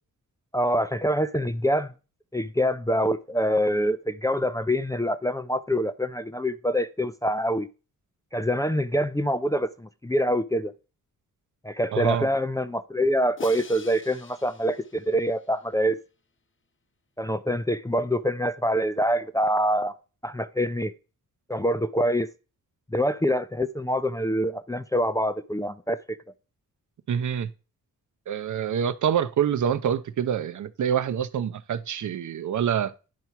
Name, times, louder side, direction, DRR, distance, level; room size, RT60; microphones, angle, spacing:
voice 1, 0.5-1.9 2.3-7.7 8.3-10.7 11.6-16.0 17.2-19.9 20.2-20.9 21.5-22.3 22.9-26.2, equal, 10° left, 0.4 m, -25 dB
voice 2, 11.9-12.3 27.1-27.5 28.3-32.9, right 8 dB, 60° right, 0.7 m, -26 dB
Crash cymbal, 13.4-15.6, left 5 dB, 35° left, 0.8 m, -45 dB
9.6 x 4.5 x 5.8 m
cardioid pair, 90°, 33 cm